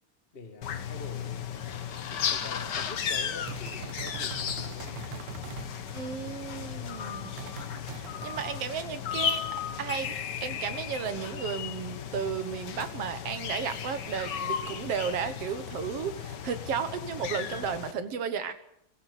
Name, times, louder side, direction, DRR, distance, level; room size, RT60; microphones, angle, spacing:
voice 1, 0.3-5.0 6.6-7.2, left 4 dB, 25° left, 7 dB, 1.3 m, -46 dB
sound 1, 0.6-17.9, left 8 dB, 75° left, 0.9 m, -35 dB
sound 2, 1.4-10.0, left 5 dB, 50° left, 2.7 m, -53 dB
sound 3, 3.5-5.7 7.4-8.4, right 10 dB, 85° right, 3.0 m, -42 dB
voice 2, 5.9-7.3 7.9-9.4 9.8-10.2 10.4-18.5, right 7 dB, 55° right, 11 dB, 2.0 m, -34 dB
24.5 x 15.5 x 8.2 m, 0.72 s
omnidirectional pair, 3.8 m